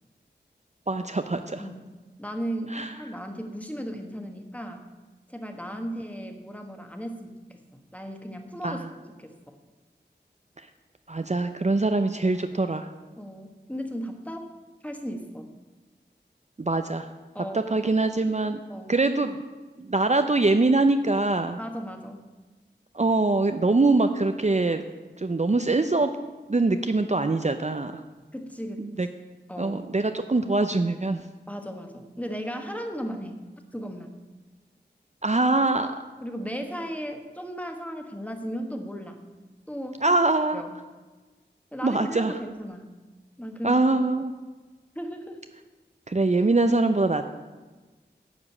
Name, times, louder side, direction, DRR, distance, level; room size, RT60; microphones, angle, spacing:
voice 1, 0.9-1.6 2.7-2.9 8.6-8.9 11.1-12.9 16.6-17.1 17.5-18.6 18.9-19.4 19.8-21.6 22.9-24.8 25.2-26.1 26.5-27.9 28.8-29.1 29.6-31.2 35.2-35.9 40.0-40.6 41.8-42.3 43.6-44.3 46.1-47.3, right 2 dB, 40° right, 8 dB, 0.5 m, -23 dB
voice 2, 1.6-1.9 2.2-4.8 5.3-7.4 7.9-9.5 13.2-14.5 14.8-15.5 17.3-17.6 18.7-19.0 21.6-22.3 28.3-28.9 29.5-29.8 31.5-33.4 33.7-34.1 36.2-39.3 39.7-40.1 40.5-40.7 41.7-42.9 43.4-43.8 44.9-45.4, equal, 10° left, 5 dB, 1.3 m, -36 dB
10.5 x 5.1 x 8.4 m, 1.3 s
wide cardioid pair, 40°, 18 cm